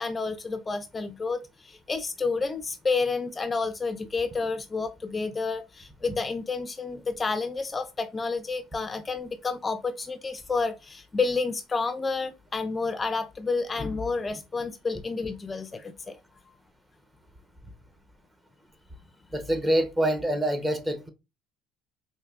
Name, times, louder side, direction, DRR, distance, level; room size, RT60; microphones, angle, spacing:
voice 1, 0.0-16.2 16.5-16.6, left 4 dB, 25° left, 0.3 m, -30 dB
voice 2, 19.3-21.1, right 1 dB, 20° right, 0.8 m, -25 dB
4.5 x 2.6 x 2.4 m
supercardioid pair, 95°, 0 cm